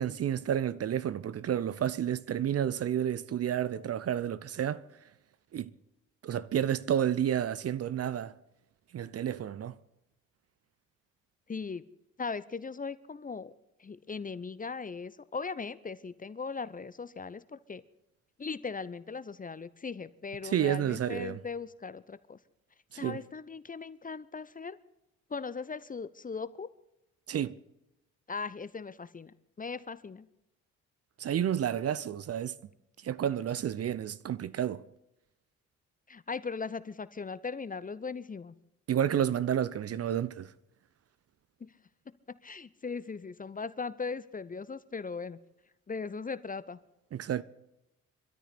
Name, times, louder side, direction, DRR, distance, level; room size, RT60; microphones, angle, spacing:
voice 1, 0.0-4.8 5.5-5.7 6.2-8.3 8.9-9.8 20.4-21.4 22.9-23.2 27.3-27.6 31.2-32.6 33.0-34.8 38.9-40.5 47.1-47.4, right 10 dB, 40° right, 0.7 m, -30 dB
voice 2, 11.5-11.8 12.2-13.5 13.8-17.8 18.4-22.4 23.0-24.8 25.3-26.7 28.3-30.3 36.1-38.5 41.6-41.7 42.3-45.4 45.9-46.8, left 5 dB, 20° left, 0.8 m, -39 dB
24.0 x 13.5 x 4.1 m
figure-of-eight pair, 45°, 39 cm